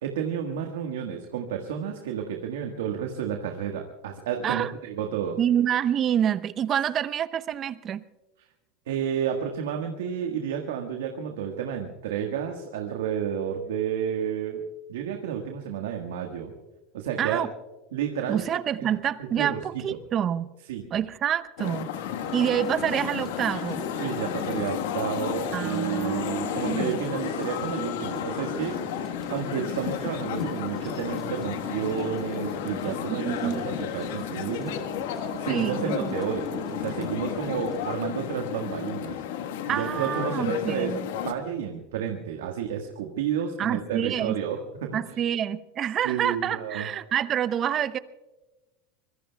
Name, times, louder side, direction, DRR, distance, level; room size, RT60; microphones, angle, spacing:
voice 1, 0.0-5.4 8.9-14.6 14.9-16.5 16.9-17.4 17.9-18.4 18.8-18.9 19.2-19.8 20.6-20.8 24.0-28.8 29.3-34.8 35.4-39.2 39.7-45.2 46.0-46.9, right 8 dB, 85° right, 3 dB, 1.6 m, -31 dB
voice 2, 5.4-8.0 17.2-17.5 18.3-20.5 20.9-21.9 22.3-23.8 25.5-27.0 33.1-33.6 35.5-36.2 39.7-41.0 43.6-44.4 44.9-48.0, right 9 dB, 40° right, 14 dB, 0.8 m, -27 dB
sound 1, 21.6-41.3, left 9 dB, 75° left, 1.4 m, -32 dB
sound 2, 22.2-38.0, left 2 dB, 15° left, 1.9 m, -41 dB
25.0 x 22.0 x 2.3 m, 1.1 s
hypercardioid pair, 100°, 0 cm